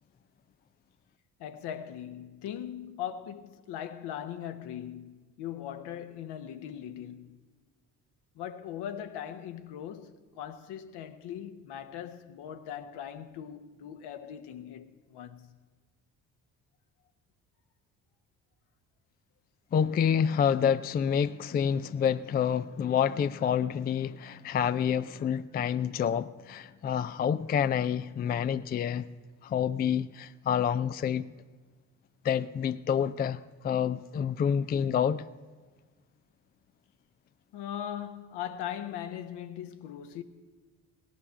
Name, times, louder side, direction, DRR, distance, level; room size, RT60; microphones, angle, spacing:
voice 1, 1.4-7.4 8.3-15.5 37.5-40.2, left 10 dB, 65° left, 1.1 m, -40 dB
voice 2, 19.7-29.1 29.4-31.2 32.2-35.2, left 8 dB, 25° left, 0.4 m, -28 dB
17.5 x 11.5 x 5.7 m
hypercardioid pair, 50°, 44 cm